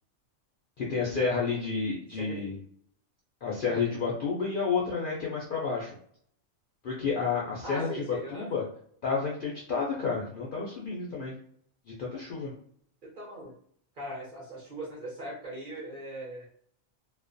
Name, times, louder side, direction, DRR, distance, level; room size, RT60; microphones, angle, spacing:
voice 1, 0.8-2.6 3.4-5.9 6.8-8.6 9.0-11.3 12.0-12.5, left 5 dB, 65° left, -4 dB, 0.5 m, -30 dB
voice 2, 7.6-8.5 13.0-13.5 14.0-16.5, right 1 dB, 50° right, -4 dB, 0.6 m, -40 dB
2.3 x 2.1 x 2.5 m, 0.62 s
omnidirectional pair, 1.4 m